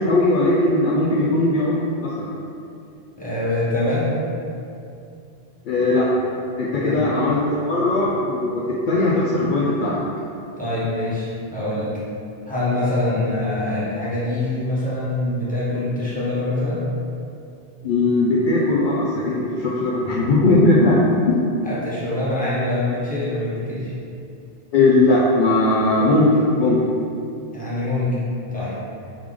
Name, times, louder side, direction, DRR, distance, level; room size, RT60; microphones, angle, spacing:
voice 1, 0.0-2.3 5.7-6.1 6.6-10.0 17.8-21.4 24.7-26.8, left 2 dB, 60° left, -6 dB, 0.6 m, -19 dB
voice 2, 3.2-4.1 6.8-7.1 10.6-11.9 12.5-16.8 21.6-23.9 27.5-28.1 28.5-28.8, left 2 dB, 10° left, -10 dB, 1.0 m, -24 dB
3.7 x 3.4 x 3.2 m, 2.6 s
omnidirectional pair, 1.0 m